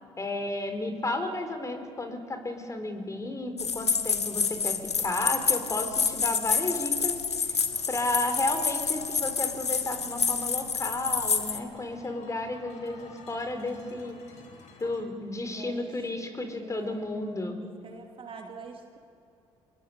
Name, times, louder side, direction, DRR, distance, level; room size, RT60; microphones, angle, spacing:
voice 1, 0.2-7.6 7.9-14.2 14.8-17.6, left 2 dB, 25° left, 7 dB, 4.1 m, -33 dB
sound 1, 3.6-11.6, left 5 dB, 85° left, 0.9 m, -28 dB
sound 2, 7.4-15.0, left 3 dB, 55° left, 3.2 m, -52 dB
voice 2, 15.4-15.9 16.2-17.1 17.6-19.0, right 4 dB, 40° right, 3 dB, 2.8 m, -45 dB
25.5 x 21.0 x 7.1 m, 2.7 s
figure-of-eight pair, 45°, 14 cm